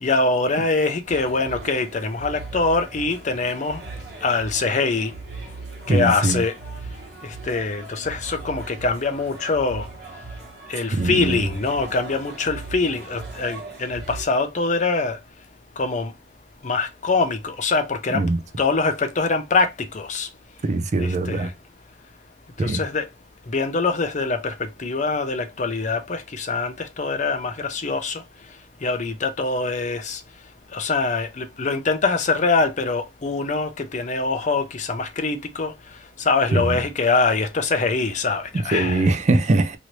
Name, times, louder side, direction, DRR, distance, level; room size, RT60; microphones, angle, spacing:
voice 1, 0.0-3.8 4.2-5.1 5.9-6.5 7.2-9.9 10.7-15.2 15.8-16.1 16.6-18.2 18.6-20.3 21.0-21.5 22.6-23.1 23.5-28.2 28.8-30.2 30.7-35.7 36.2-39.1, left 3 dB, 45° left, 0.6 m, -24 dB
sound 1, 1.1-14.2, right 3 dB, 65° right, 1.2 m, -38 dB
voice 2, 5.9-6.4 10.9-11.5 18.1-18.4 20.6-21.5 22.6-22.8 36.5-36.8 38.5-39.8, right 2 dB, 40° right, 0.4 m, -21 dB
3.0 x 2.6 x 3.0 m
head